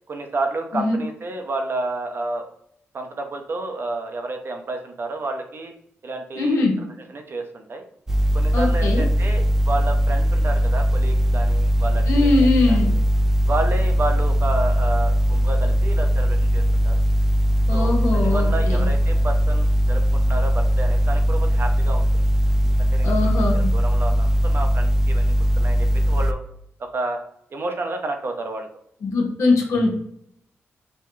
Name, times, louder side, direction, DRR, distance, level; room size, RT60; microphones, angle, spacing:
voice 1, 0.1-2.5 2.9-5.7 6.0-6.7 7.1-7.8 8.3-13.0 13.5-17.0 17.7-22.2 22.6-23.1 23.5-26.4 26.9-27.2 27.5-28.7, right 2 dB, 50° right, 4 dB, 0.7 m, -30 dB
voice 2, 6.4-6.7 8.5-9.0 12.1-12.9 17.7-18.9 23.0-23.7 29.0-29.9, left 3 dB, 75° left, 0 dB, 1.0 m, -21 dB
sound 1, 8.1-26.3, equal, 10° right, 0.4 m, -19 dB
5.4 x 2.2 x 3.1 m, 0.72 s
cardioid pair, 75°, 5 cm